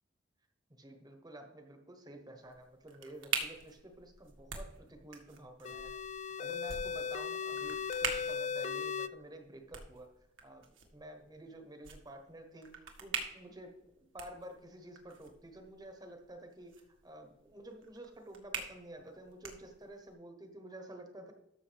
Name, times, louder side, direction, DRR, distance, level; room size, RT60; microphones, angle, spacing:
voice 1, 0.7-5.9 6.4-10.1 10.4-16.7 17.0-21.3, right 1 dB, 20° right, 4 dB, 1.0 m, -51 dB
sound 1, 2.4-20.1, right 6 dB, 85° right, 1.7 m, -45 dB
sound 2, 5.6-9.1, left 6 dB, 35° left, 0.3 m, -37 dB
13.0 x 6.8 x 3.4 m, 0.93 s
head